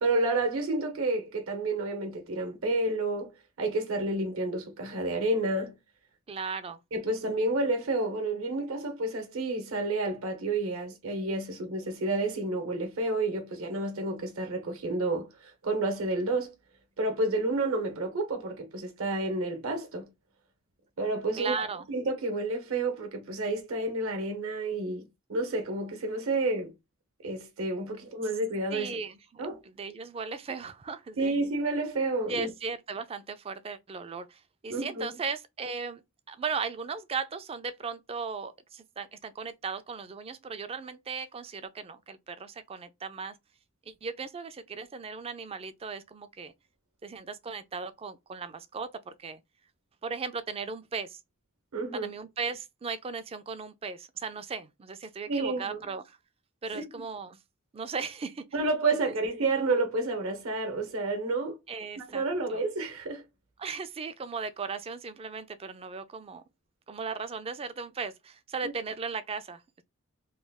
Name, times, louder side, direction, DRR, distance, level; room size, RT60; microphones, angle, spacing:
voice 1, 0.0-3.3 3.6-5.8 6.9-16.5 17.0-20.1 21.0-21.6 21.9-26.7 27.2-29.0 29.4-29.6 31.2-32.5 34.7-35.1 51.7-52.1 55.3-55.8 56.7-56.8 58.5-61.6 62.0-63.2 68.6-68.7, right 2 dB, 65° right, 0.8 m, -30 dB
voice 2, 6.3-6.8 21.4-21.9 28.7-31.3 32.3-36.0 36.3-43.4 43.9-46.5 47.0-49.4 50.0-51.2 51.9-56.2 56.6-57.4 57.7-58.4 59.1-59.2 61.7-62.2 62.5-62.6 63.6-66.4 66.9-69.8, right 5 dB, 25° right, 0.3 m, -37 dB
3.2 x 2.2 x 3.4 m
head